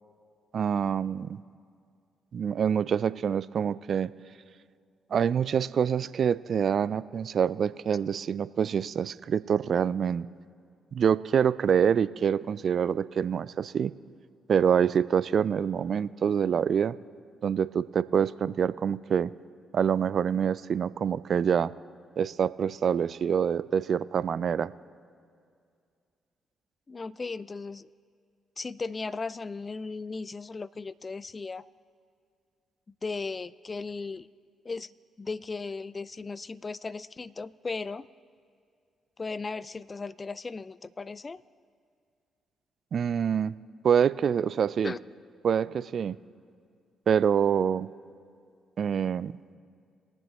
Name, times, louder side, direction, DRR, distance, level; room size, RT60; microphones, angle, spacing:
voice 1, 0.5-1.4 2.3-4.1 5.1-10.3 10.9-13.9 14.5-17.0 17.4-19.3 19.7-21.7 22.2-24.7 42.9-43.6 43.8-44.9 45.4-46.2 47.1-47.9 48.8-49.4, right 7 dB, 55° right, 17 dB, 0.3 m, -26 dB
voice 2, 26.9-27.9 28.6-31.7 33.0-34.3 34.6-34.9 35.2-38.1 39.2-41.4 44.8-45.0, left 4 dB, 35° left, 19 dB, 0.3 m, -36 dB
22.0 x 7.7 x 3.0 m, 2.3 s
hypercardioid pair, 45°, 0 cm